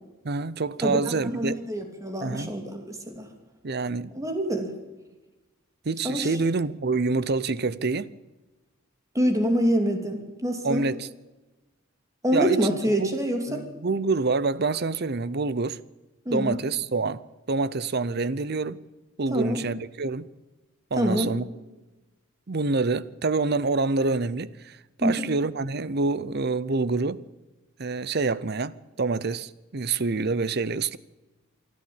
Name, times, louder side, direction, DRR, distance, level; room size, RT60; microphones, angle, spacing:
voice 1, 0.2-1.6 2.2-2.5 3.6-4.1 5.8-8.1 10.6-11.1 12.3-13.1 13.5-15.8 16.3-17.2 17.5-18.8 19.2-20.3 20.9-21.4 22.5-27.2 27.8-31.0, right 3 dB, 50° right, 0.7 m, -27 dB
voice 2, 0.8-3.3 4.1-4.7 6.0-6.4 9.1-10.9 12.2-13.6 16.2-16.6 19.3-19.6 21.0-21.4 25.0-25.3, equal, 15° right, 2.7 m, -26 dB
24.5 x 12.5 x 8.7 m
head